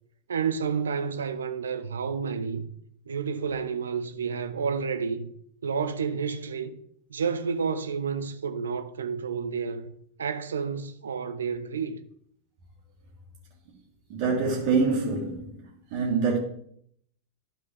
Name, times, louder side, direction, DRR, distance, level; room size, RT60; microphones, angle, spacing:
voice 1, 0.3-2.7 3.1-5.3 5.6-6.8 7.1-9.8 10.2-12.0, right 6 dB, 70° right, 0.6 m, -30 dB
voice 2, 14.1-15.6 15.9-16.4, right 4 dB, 45° right, 1.5 m, -25 dB
12.0 x 4.6 x 3.4 m
figure-of-eight pair, 90°, 0 cm